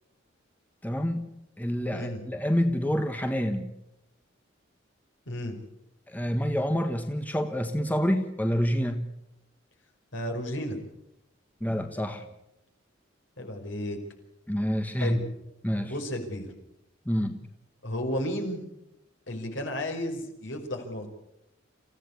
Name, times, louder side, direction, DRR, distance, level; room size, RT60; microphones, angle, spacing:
voice 1, 0.8-1.3 1.6-3.7 6.1-9.1 11.6-12.3 14.5-15.2 15.6-15.9 17.0-17.4, equal, 10° left, 6 dB, 1.4 m, -27 dB
voice 2, 5.3-5.6 10.1-10.8 13.4-14.0 15.0-15.2 15.8-16.5 17.8-18.6 19.3-21.1, left 1 dB, 70° left, 3 dB, 5.3 m, -33 dB
27.5 x 16.0 x 8.4 m, 0.86 s
head